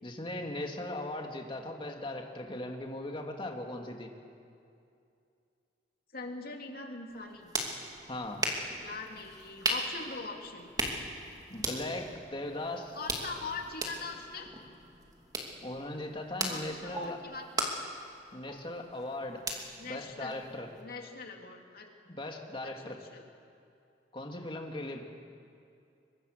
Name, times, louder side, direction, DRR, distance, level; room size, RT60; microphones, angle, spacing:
voice 1, 0.0-4.1 8.1-8.4 11.5-13.0 15.6-17.2 18.3-19.5 19.8-20.7 22.1-23.0 24.1-25.0, left 1 dB, 30° left, 2 dB, 2.3 m, -38 dB
voice 2, 6.1-7.5 8.8-10.7 12.9-14.5 16.5-17.7 19.8-20.4 20.7-21.9 22.6-23.2, left 3 dB, 55° left, 2 dB, 2.8 m, -42 dB
sound 1, 7.1-20.8, right 1 dB, 20° right, 2.6 m, -38 dB
23.5 x 23.0 x 6.7 m, 2.5 s
head